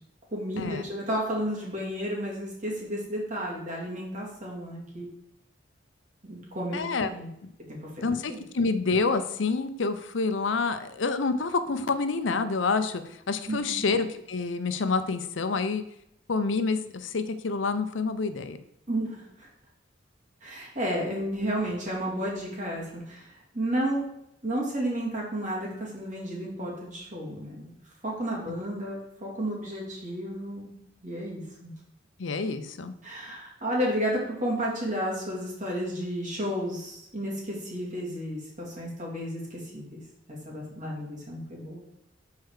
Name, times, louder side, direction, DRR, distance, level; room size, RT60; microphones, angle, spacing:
voice 1, 0.3-5.1 6.2-7.3 7.7-8.4 13.5-13.9 18.9-19.5 20.4-24.0 24.4-27.7 28.0-30.7 31.0-31.7 33.0-40.0 40.3-41.8, equal, 45° right, -3 dB, 2.5 m, -32 dB
voice 2, 6.7-7.1 7.4-7.5 8.0-13.0 13.3-15.8 16.3-18.6 32.2-32.9, left 4 dB, 90° left, 10 dB, 0.6 m, -28 dB
6.5 x 4.6 x 4.8 m, 0.79 s
head